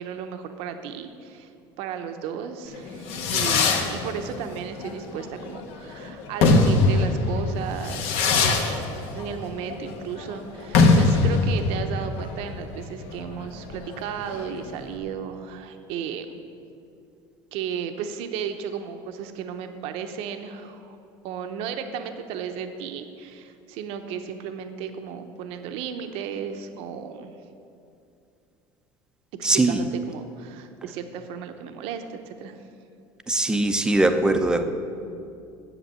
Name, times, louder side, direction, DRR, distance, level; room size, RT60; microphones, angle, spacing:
voice 1, 0.0-1.5 1.8-8.9 9.1-16.4 17.5-21.0 21.2-27.3 29.4-32.6, right 7 dB, 65° right, 7 dB, 0.8 m, -34 dB
Fireworks, 2.7-14.9, left 3 dB, 65° left, 1.1 m, -23 dB
voice 2, 29.4-29.8 33.3-34.7, right 2 dB, 5° right, 7 dB, 0.6 m, -21 dB
8.1 x 7.6 x 7.6 m, 2.6 s
cardioid pair, 135°, 11 cm